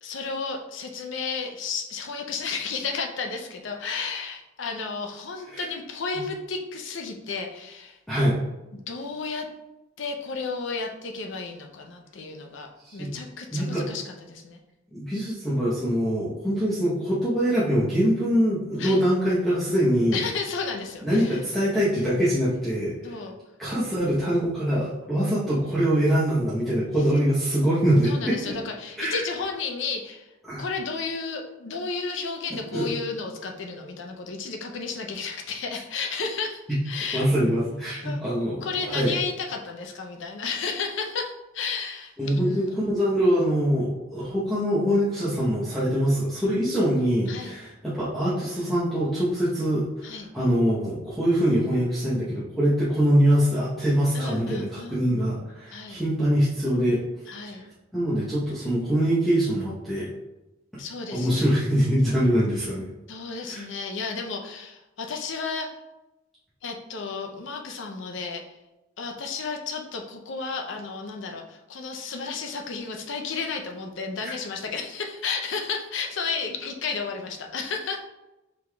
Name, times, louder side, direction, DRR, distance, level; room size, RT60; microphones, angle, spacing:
voice 1, 0.0-8.0 8.9-9.5 10.0-14.6 18.8-19.0 20.1-21.4 23.0-23.3 28.0-30.3 30.6-37.3 38.0-38.2 38.6-42.9 47.3-47.5 50.0-50.3 54.1-55.0 55.7-56.0 57.3-57.6 60.8-61.5 63.1-65.8 66.6-68.6 69.0-78.0, left 4 dB, 70° left, 3 dB, 0.6 m, -33 dB
voice 2, 8.1-8.4 12.9-13.1 13.5-13.8 14.9-20.2 21.0-23.1 23.6-28.6 29.0-29.2 30.5-30.6 32.7-32.9 37.1-39.2 42.2-50.1 50.3-57.0 57.4-57.6 57.9-60.1 61.1-62.9 63.5-63.6, equal, ahead, -11 dB, 0.8 m, -23 dB
4.7 x 3.8 x 2.3 m, 0.98 s
head